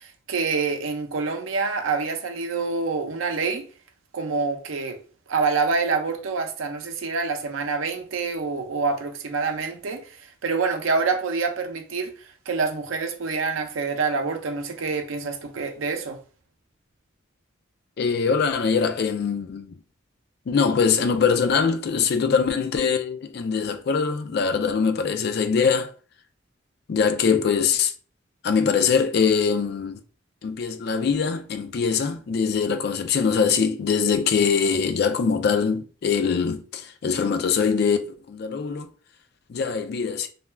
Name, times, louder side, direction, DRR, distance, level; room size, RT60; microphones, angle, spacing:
voice 1, 0.0-3.7 4.1-5.0 5.3-12.1 12.5-16.2, right 4 dB, 80° right, 0.5 m, -26 dB
voice 2, 18.0-19.8 20.5-25.9 26.9-27.9 28.4-30.0 30.4-38.9 39.5-40.3, left 6 dB, 55° left, 0.3 m, -23 dB
2.4 x 2.2 x 3.1 m
head